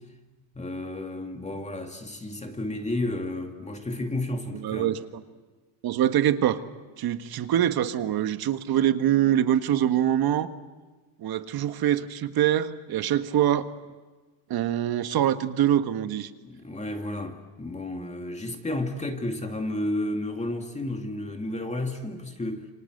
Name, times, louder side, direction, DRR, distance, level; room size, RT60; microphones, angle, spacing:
voice 1, 0.5-5.0 16.4-22.7, left 1 dB, 15° left, 2.4 m, -32 dB
voice 2, 4.6-5.2 5.8-6.6 7.0-10.5 11.2-13.7 14.5-16.3, right 11 dB, 50° right, 1.6 m, -24 dB
28.0 x 25.0 x 8.0 m
cardioid pair, 115°, 47 cm